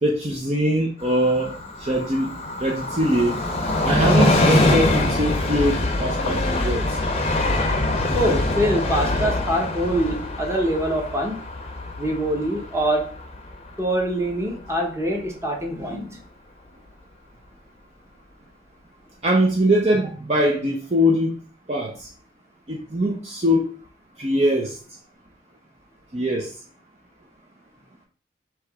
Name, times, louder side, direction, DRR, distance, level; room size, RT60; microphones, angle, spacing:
voice 1, 0.0-2.3 2.6-3.4 3.8-6.8 19.2-21.4 21.7-22.1 22.7-23.8 24.2-24.8 26.1-26.5, equal, 35° right, -1 dB, 0.6 m, -22 dB
Train, 1.0-14.3 14.7-14.8, left 2 dB, 35° left, 0.6 m, -24 dB
voice 2, 8.1-11.4 12.0-13.1 13.8-16.2, right 1 dB, 15° right, 0 dB, 1.0 m, -24 dB
3.4 x 2.9 x 4.7 m, 0.41 s
head